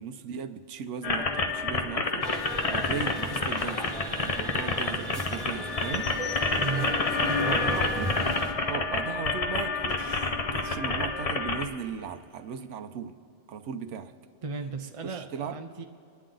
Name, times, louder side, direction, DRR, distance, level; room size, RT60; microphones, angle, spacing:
voice 1, 0.0-6.1 6.4-8.2 8.7-13.1 13.5-14.1 15.0-15.6, right 6 dB, 65° right, 8 dB, 1.0 m, -37 dB
sound 1, 1.0-11.6, left 3 dB, 35° left, 0.7 m, -29 dB
sound 2, 2.2-8.5, right 1 dB, ahead, 1.4 m, -38 dB
voice 2, 6.6-6.9 7.2-7.7 14.4-15.8, right 4 dB, 50° right, 5 dB, 0.4 m, -35 dB
28.0 x 10.0 x 3.8 m, 2.5 s
omnidirectional pair, 1.4 m